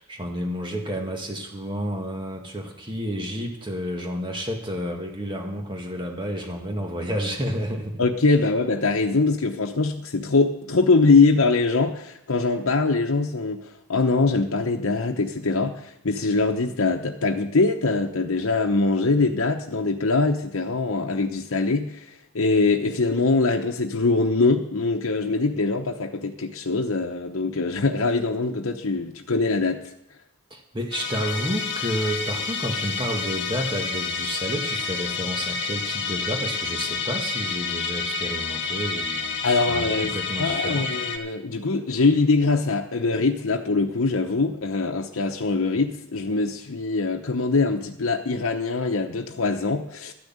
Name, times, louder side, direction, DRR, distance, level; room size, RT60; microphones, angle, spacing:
voice 1, 0.0-8.0 30.5-40.9, equal, 25° right, 2 dB, 1.8 m, -30 dB
voice 2, 8.0-29.9 39.4-40.1 40.4-50.1, left 3 dB, 90° left, 2 dB, 0.9 m, -23 dB
Musical instrument, 30.9-41.2, left 4 dB, 55° left, 1.6 m, -29 dB
13.0 x 6.5 x 8.7 m, 0.80 s
head